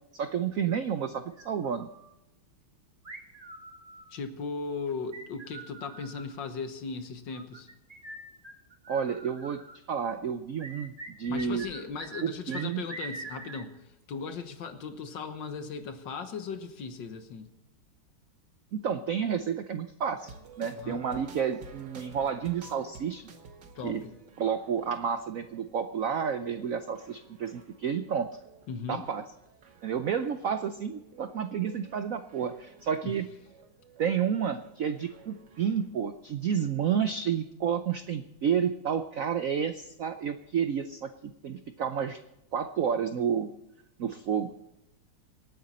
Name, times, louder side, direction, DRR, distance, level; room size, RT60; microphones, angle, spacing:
voice 1, 0.1-1.9 8.9-9.6 9.9-11.6 12.2-12.8 18.7-23.3 23.8-24.0 24.4-28.3 28.9-29.2 29.8-33.3 34.0-42.2 42.5-43.5 44.0-44.5, right 7 dB, 85° right, 9 dB, 0.7 m, -30 dB
sound 1, 1.4-2.1 3.0-4.2 5.1-6.4 7.3-9.8 10.6-12.2 12.5-13.6, right 3 dB, 25° right, 1.1 m, -44 dB
voice 2, 4.1-7.7 11.3-13.7 14.1-17.5 20.8-21.1 23.8-24.1 28.7-29.0 33.0-33.1, left 5 dB, 60° left, 8 dB, 1.8 m, -37 dB
sound 2, 20.2-35.9, right 5 dB, 55° right, 1.9 m, -53 dB
26.0 x 9.2 x 4.2 m, 0.90 s
omnidirectional pair, 2.3 m